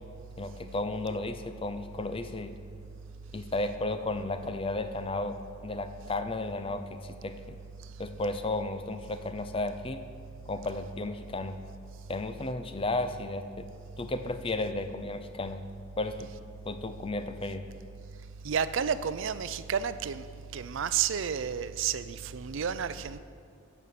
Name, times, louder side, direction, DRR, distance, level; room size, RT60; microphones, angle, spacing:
voice 1, 0.4-2.5 3.3-5.4 5.6-7.6 8.0-10.0 10.5-11.6 12.1-13.7 14.0-15.6 16.0-16.3 16.7-17.6, left 2 dB, 25° left, 0.5 m, -33 dB
voice 2, 18.4-20.2 20.5-23.2, right 7 dB, 65° right, 0.4 m, -31 dB
12.0 x 5.5 x 7.6 m
head